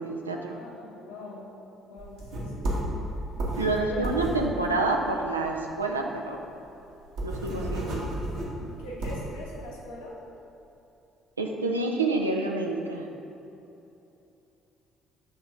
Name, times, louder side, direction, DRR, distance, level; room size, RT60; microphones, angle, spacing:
voice 1, 0.0-0.6 3.6-6.4 7.2-8.1 11.4-13.1, right 2 dB, 85° right, 1 dB, 0.5 m, -28 dB
voice 2, 0.5-1.5 1.9-3.0 3.5-4.1 8.4-10.2, left 1 dB, 75° left, -5 dB, 1.3 m, -42 dB
sound 1, 2.0-5.7 6.0-6.1 6.4-6.5 6.8-9.4, right 1 dB, 65° right, 1.4 m, -32 dB
7.9 x 3.6 x 5.2 m, 2.9 s
figure-of-eight pair, 50°, 0 cm